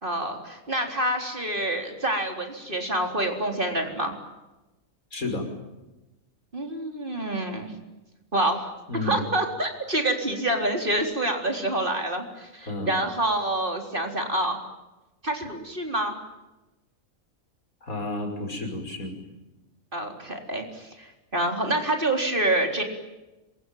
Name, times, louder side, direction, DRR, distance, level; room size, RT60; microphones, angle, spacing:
voice 1, 0.0-4.2 6.5-7.7 8.3-8.7 9.0-14.6 15.2-16.2 19.9-22.8, right 1 dB, 35° right, 3 dB, 4.1 m, -27 dB
voice 2, 5.1-5.5 8.9-9.2 12.6-12.9 17.8-19.2, left 2 dB, 75° left, 4 dB, 6.1 m, -31 dB
26.5 x 23.5 x 9.2 m, 1.1 s
omnidirectional pair, 1.5 m